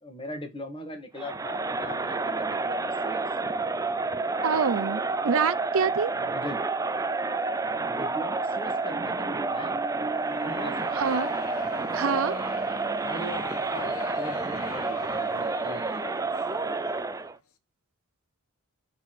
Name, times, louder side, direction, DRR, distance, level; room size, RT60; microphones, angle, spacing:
voice 1, 0.0-3.6 6.1-6.6 8.0-9.8 10.4-11.0 13.0-16.1, left 1 dB, 25° left, 1.8 m, -40 dB
Crowd, 1.2-17.4, right 3 dB, 15° right, 0.4 m, -29 dB
voice 2, 4.4-6.1 10.9-11.4 11.9-12.4, right 6 dB, 65° right, 0.6 m, -26 dB
sound 1, 10.1-17.3, left 4 dB, 85° left, 1.3 m, -44 dB
6.1 x 4.3 x 5.9 m
head